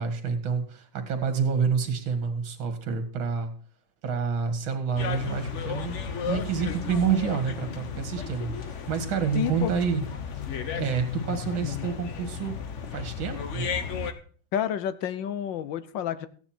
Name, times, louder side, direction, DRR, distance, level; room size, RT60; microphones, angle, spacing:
voice 1, 0.0-3.5 4.0-10.0 10.7-12.6 12.9-13.7, right 6 dB, 70° right, 8 dB, 2.6 m, -28 dB
sound 1, 5.0-14.1, left 6 dB, 50° left, 1.0 m, -34 dB
voice 2, 9.3-9.7 11.3-11.9 14.5-16.3, left 9 dB, 70° left, 14 dB, 1.4 m, -30 dB
15.0 x 9.4 x 4.4 m, 0.43 s
omnidirectional pair, 2.3 m